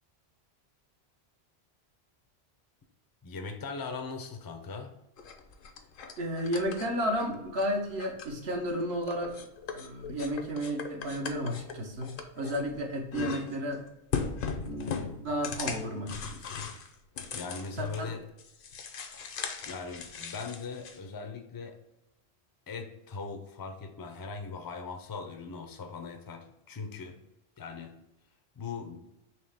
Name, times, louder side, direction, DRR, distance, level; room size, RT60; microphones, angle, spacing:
voice 1, 3.2-4.9 17.3-18.2 19.6-21.8 22.7-27.2 27.6-27.9 28.6-29.0, left 4 dB, 30° left, 5 dB, 0.4 m, -40 dB
sound 1, 5.2-7.7 8.0-8.7 9.0-12.8 13.1-13.7 14.1-18.1 18.4-21.0, left 5 dB, 60° left, 0.7 m, -38 dB
voice 2, 6.2-9.4 9.7-13.8 14.6-16.4 17.8-18.1, equal, 70° right, 1 dB, 1.2 m, -33 dB
4.4 x 3.1 x 3.4 m, 0.89 s
omnidirectional pair, 1.1 m